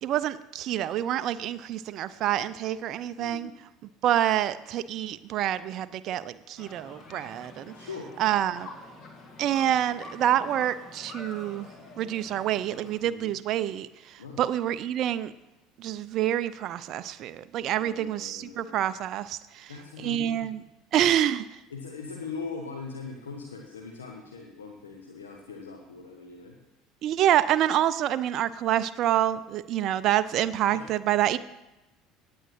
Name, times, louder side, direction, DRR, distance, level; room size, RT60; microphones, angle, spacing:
voice 1, 0.0-3.5 4.0-7.7 8.2-8.7 9.4-11.7 12.0-15.3 15.8-19.7 20.0-20.6 20.9-21.4 27.0-31.4, right 11 dB, 50° right, 13 dB, 0.4 m, -27 dB
voice 2, 3.2-3.6 7.7-8.1 13.0-13.3 14.2-14.4 17.8-18.8 19.7-20.5 21.7-26.6 30.7-30.9, left 4 dB, 75° left, 1 dB, 1.1 m, -41 dB
sound 1, 6.6-13.0, left 2 dB, 40° left, 1.9 m, -47 dB
18.0 x 8.6 x 3.2 m, 1.0 s
figure-of-eight pair, 65°, 0 cm